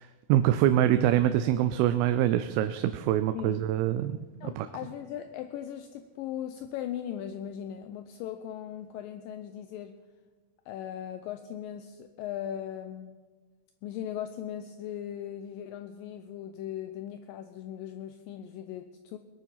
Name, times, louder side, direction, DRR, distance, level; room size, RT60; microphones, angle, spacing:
voice 1, 0.0-4.7, right 12 dB, 80° right, 11 dB, 2.4 m, -25 dB
voice 2, 4.4-10.0 10.7-13.1 13.8-19.2, left 10 dB, 80° left, 8 dB, 2.1 m, -38 dB
20.5 x 9.3 x 5.8 m, 1.3 s
omnidirectional pair, 4.5 m